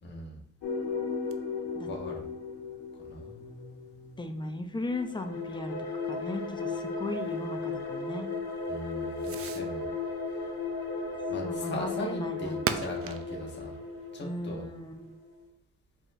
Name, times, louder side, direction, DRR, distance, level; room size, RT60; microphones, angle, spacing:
voice 1, 0.0-0.4 1.9-2.2 3.0-4.1 8.7-9.9 11.3-13.7 14.1-14.6, left 1 dB, 35° left, -1 dB, 1.3 m, -39 dB
sound 1, 0.6-4.2 4.8-15.4, left 4 dB, 85° left, 1.3 m, -36 dB
Fireworks, 0.6-15.2, right 7 dB, 50° right, 0.5 m, -45 dB
voice 2, 4.2-5.7 6.0-8.3 11.4-12.7 14.2-15.0, left 2 dB, 15° left, 6 dB, 0.5 m, -37 dB
4.8 x 4.0 x 2.6 m, 0.71 s
cardioid pair, 90°, 30 cm